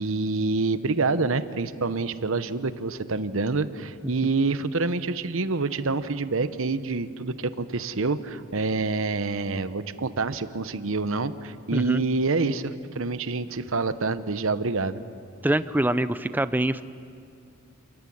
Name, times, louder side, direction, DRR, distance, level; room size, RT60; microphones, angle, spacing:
voice 1, 0.0-15.0, right 3 dB, 65° right, 12 dB, 0.9 m, -27 dB
voice 2, 11.7-12.0 15.4-16.8, right 1 dB, 10° right, 13 dB, 0.5 m, -24 dB
28.5 x 14.5 x 9.9 m, 2.4 s
head